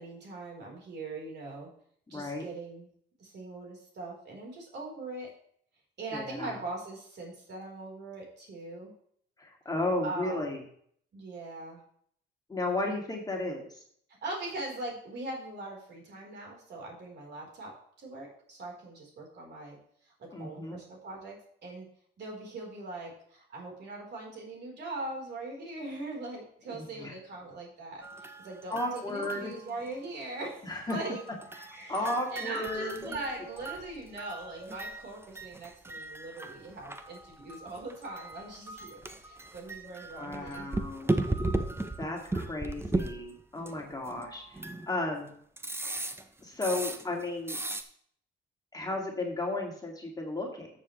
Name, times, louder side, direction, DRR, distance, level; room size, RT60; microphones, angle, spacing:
voice 1, 0.0-1.7 2.1-2.9 3.2-5.3 6.0-8.9 10.0-10.5 11.1-11.8 14.2-19.8 20.0-21.9 22.2-30.6 30.9-31.2 31.7-40.7 43.5-43.8, right 2 dB, 60° right, -1 dB, 4.2 m, -41 dB
voice 2, 2.1-2.5 6.1-6.6 9.4-10.6 12.5-13.8 20.3-20.8 26.7-27.1 28.7-29.5 30.6-31.0 31.6-33.2 40.2-41.1 42.0-45.3 46.4-47.6 48.7-50.7, left 2 dB, 20° left, 0 dB, 2.4 m, -34 dB
sound 1, 28.0-30.0 30.9-44.9 45.6-47.2 47.5-47.8, right 2 dB, 10° right, 0.9 m, -37 dB
13.0 x 6.9 x 3.2 m, 0.63 s
cardioid pair, 90°, 20 cm